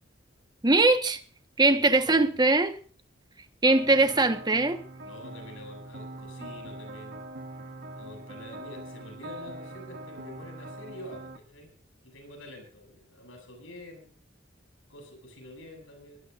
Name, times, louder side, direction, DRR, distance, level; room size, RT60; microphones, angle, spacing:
voice 1, 0.6-1.2 1.6-2.8 3.6-4.8, right 2 dB, 20° right, 1.3 m, -21 dB
voice 2, 1.6-2.4 3.6-4.3 5.0-7.3 8.0-11.7 12.0-14.1 14.9-16.3, left 1 dB, 80° left, 7.7 m, -47 dB
sound 1, 3.6-11.4, right 1 dB, 50° right, 1.4 m, -42 dB
23.5 x 18.5 x 2.6 m
head